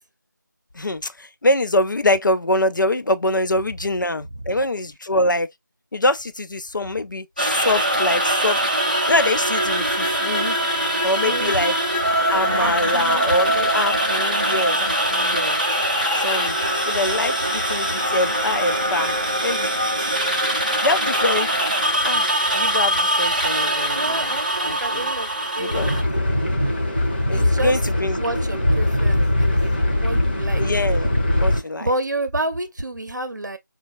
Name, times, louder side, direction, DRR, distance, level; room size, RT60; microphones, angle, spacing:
voice 1, 0.7-5.5 5.9-8.6 9.1-10.6 11.0-11.7 12.3-15.6 16.1-16.6 16.9-19.1 19.4-20.1 20.4-21.5 22.0-22.3 22.5-24.4 24.6-25.1 25.6-25.9 27.3-28.2 30.5-31.9, left 1 dB, 80° left, 0.4 m, -24 dB
sound 1, 7.4-26.0, right 1 dB, 25° right, 0.5 m, -22 dB
voice 2, 11.2-12.0 12.6-13.3 23.9-25.9 27.3-27.8 28.2-29.6 30.0-30.6 31.8-33.6, right 2 dB, 65° right, 0.6 m, -29 dB
sound 2, 25.7-31.6, left 1 dB, 35° left, 0.7 m, -21 dB
4.4 x 2.3 x 2.4 m
figure-of-eight pair, 170°, 10 cm